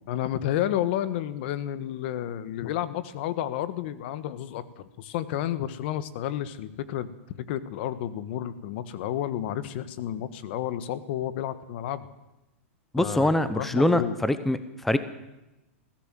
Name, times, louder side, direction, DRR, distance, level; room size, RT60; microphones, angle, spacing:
voice 1, 0.1-12.1 13.0-14.1, left 11 dB, 50° left, 14 dB, 1.4 m, -31 dB
voice 2, 12.9-15.0, left 1 dB, 5° left, 12 dB, 0.8 m, -24 dB
22.0 x 16.5 x 7.6 m, 0.97 s
supercardioid pair, 155°, 7 cm